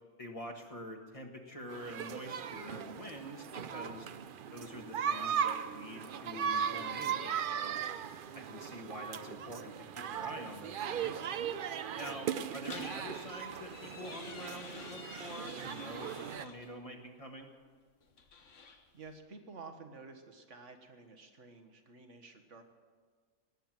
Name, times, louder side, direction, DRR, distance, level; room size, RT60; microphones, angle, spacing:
voice 1, 0.2-4.1 4.5-7.8 8.3-11.2 12.0-17.5, equal, 30° left, 3 dB, 1.8 m, -46 dB
sound 1, 1.7-16.5, right 8 dB, 55° right, 0.7 m, -38 dB
sound 2, 12.6-16.7 18.0-19.2, left 5 dB, 85° left, 1.5 m, -51 dB
voice 2, 18.4-22.6, right 4 dB, 85° right, 6 dB, 1.8 m, -52 dB
18.5 x 7.8 x 9.1 m, 1.6 s
omnidirectional pair, 1.2 m